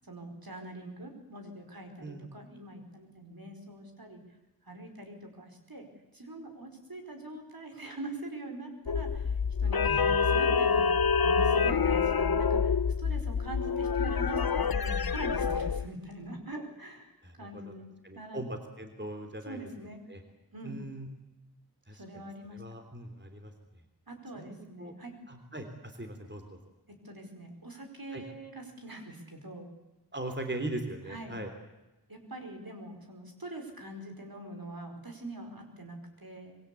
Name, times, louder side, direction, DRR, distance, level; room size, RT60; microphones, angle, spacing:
voice 1, 0.0-4.2 4.6-5.9 6.1-17.9 18.1-18.4 19.4-20.0 20.5-20.8 21.9-22.8 24.1-25.1 27.0-29.7 31.1-31.4 32.1-36.6, right 1 dB, 65° right, 5 dB, 4.9 m, -43 dB
sound 1, 8.9-15.9, left 5 dB, 65° left, 0.8 m, -27 dB
voice 2, 17.2-17.7 18.0-19.6 20.1-20.2 20.6-21.1 21.9-22.2 22.5-23.5 24.4-24.9 25.3-26.6 28.1-28.2 30.1-31.5, right 1 dB, 30° right, 5 dB, 3.4 m, -40 dB
25.5 x 22.0 x 8.5 m, 1.0 s
wide cardioid pair, 45°, 39 cm